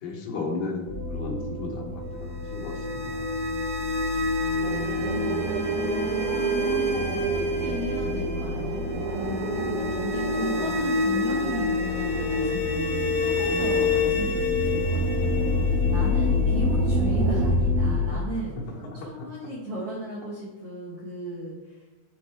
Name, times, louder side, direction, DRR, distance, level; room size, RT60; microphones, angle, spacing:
voice 1, 0.0-3.3 16.5-16.6 18.8-19.3, left 3 dB, 85° left, -2 dB, 3.3 m, -35 dB
sound 1, 0.9-18.1, left 2 dB, 40° left, 0.8 m, -29 dB
sound 2, 2.3-17.2, left 2 dB, 5° left, 0.7 m, -29 dB
voice 2, 4.4-5.5 6.6-15.6 15.9-18.6 19.0-21.8, right 1 dB, 70° right, -4 dB, 1.4 m, -36 dB
sound 3, 4.6-17.5, right 2 dB, 85° right, 2.7 m, -33 dB
12.0 x 4.2 x 3.4 m, 1.2 s
omnidirectional pair, 4.3 m